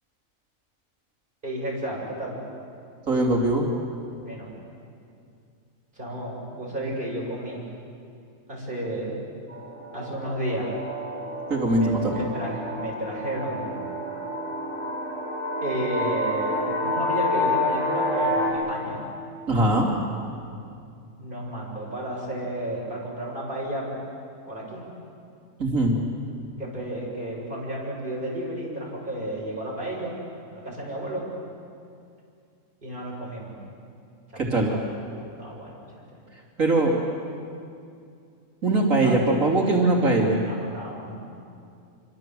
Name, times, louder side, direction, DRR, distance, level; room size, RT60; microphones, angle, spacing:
voice 1, 1.4-2.4 4.3-4.5 5.9-7.7 8.5-9.2 9.9-10.7 11.8-13.8 15.6-19.0 21.2-24.0 24.5-24.8 26.6-30.1 30.5-31.3 32.8-33.6 34.3-34.8 35.2-35.8 38.7-39.1 39.9-40.0 40.5-41.2, right 1 dB, 35° right, -4 dB, 7.3 m, -32 dB
voice 2, 3.1-3.7 11.5-12.3 19.5-19.9 25.6-26.0 34.4-34.8 36.6-37.0 38.6-40.4, right 2 dB, 70° right, -2 dB, 3.5 m, -21 dB
sound 1, 9.5-18.5, left 1 dB, 20° left, 5.2 m, -29 dB
27.0 x 25.0 x 7.7 m, 2.4 s
omnidirectional pair, 1.5 m